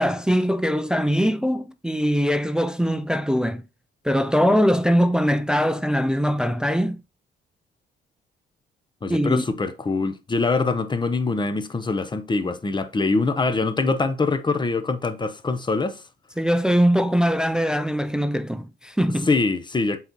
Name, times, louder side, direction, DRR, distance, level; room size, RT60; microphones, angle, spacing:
voice 1, 0.0-3.6 4.0-7.0 9.1-9.4 16.4-19.3, equal, 5° right, 0.4 m, -21 dB
voice 2, 9.0-16.0 19.2-20.0, left 3 dB, 25° left, 0.8 m, -24 dB
7.7 x 4.2 x 3.0 m
cardioid pair, 90°, 20 cm